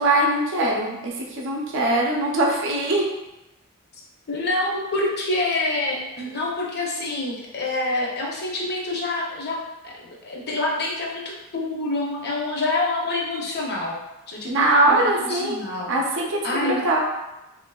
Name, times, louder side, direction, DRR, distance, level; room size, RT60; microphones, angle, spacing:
voice 1, 0.0-3.1 14.4-15.6 15.9-17.0, right 2 dB, 55° right, -1 dB, 0.5 m, -22 dB
voice 2, 4.3-11.2 11.5-14.0 14.3-15.9 16.4-16.8, left 2 dB, 50° left, -1 dB, 0.6 m, -27 dB
3.4 x 2.5 x 2.2 m, 0.97 s
head